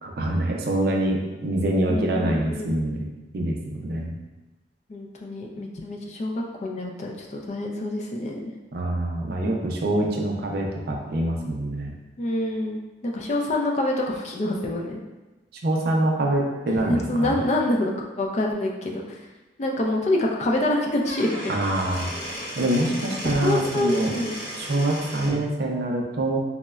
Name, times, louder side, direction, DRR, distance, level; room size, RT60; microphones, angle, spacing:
voice 1, 0.0-3.1 3.3-4.1 8.7-11.9 15.6-17.4 21.5-22.1 22.6-24.1 24.6-26.4, right 1 dB, 55° right, 0 dB, 0.4 m, -25 dB
voice 2, 1.9-2.8 4.9-8.5 12.2-15.0 16.7-17.9 18.2-19.2 19.6-21.4 23.2-24.4, left 1 dB, 40° left, 0 dB, 0.3 m, -26 dB
Squeak / Wood, 20.9-25.4, equal, 20° right, 0.8 m, -35 dB
4.0 x 2.1 x 2.3 m, 1.1 s
head